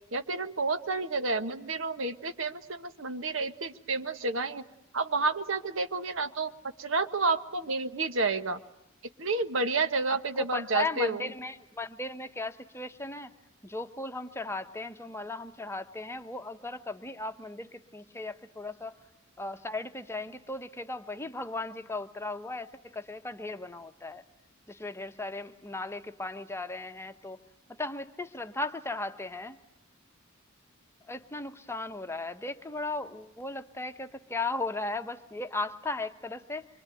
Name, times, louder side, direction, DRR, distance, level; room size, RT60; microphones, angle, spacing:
voice 1, 0.1-4.6 4.9-6.5 6.8-8.6 9.2-11.2, right 3 dB, 65° right, 10 dB, 1.3 m, -30 dB
voice 2, 10.1-13.3 13.6-19.0 19.4-24.2 24.7-27.4 27.7-29.6 31.1-36.7, left 2 dB, 10° left, 8 dB, 1.0 m, -36 dB
25.0 x 24.5 x 9.1 m, 0.83 s
head